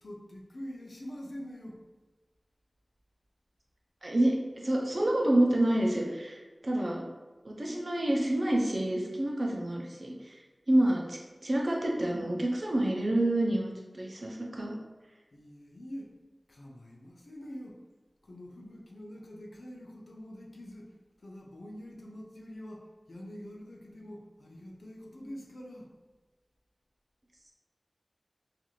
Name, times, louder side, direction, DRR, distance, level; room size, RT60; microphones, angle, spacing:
voice 1, 0.0-1.8 15.3-16.1 16.5-17.8 18.2-20.9 21.2-25.9, equal, 90° left, 0 dB, 0.4 m, -45 dB
voice 2, 4.0-7.0 7.4-10.4 10.7-14.8, right 1 dB, 65° right, -1 dB, 0.5 m, -28 dB
2.4 x 2.4 x 3.0 m, 1.2 s
wide cardioid pair, 50°, 0 cm